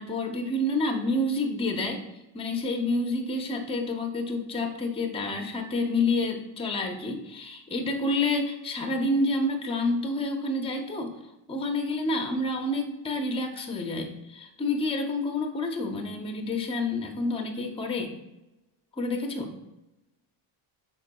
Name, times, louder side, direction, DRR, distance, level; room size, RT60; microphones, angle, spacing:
voice 1, 0.0-2.0 2.3-11.1 11.5-18.1 19.0-19.5, left 2 dB, 15° left, 4 dB, 0.5 m, -28 dB
5.8 x 3.9 x 2.2 m, 0.96 s
cardioid pair, 105°, 46 cm